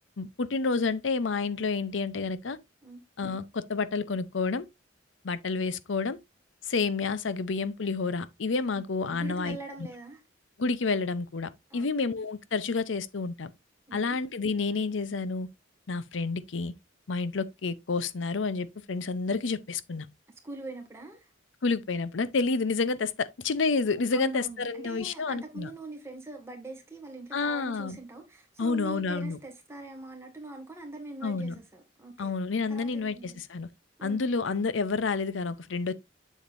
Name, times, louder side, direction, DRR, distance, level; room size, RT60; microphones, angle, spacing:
voice 1, 0.2-2.6 3.2-4.7 5.2-6.2 6.6-9.6 10.6-13.5 13.9-15.5 15.9-16.7 17.1-20.1 21.6-25.7 27.3-28.0 28.6-29.4 31.2-31.5 32.2-33.7 34.0-35.9, left 4 dB, 80° left, 0.7 m, -29 dB
voice 2, 8.7-10.2 11.7-11.9 13.9-14.2 20.4-21.3 24.1-32.3 32.7-33.4 34.0-34.3, right 2 dB, 15° right, 2.0 m, -43 dB
7.2 x 7.2 x 2.6 m
head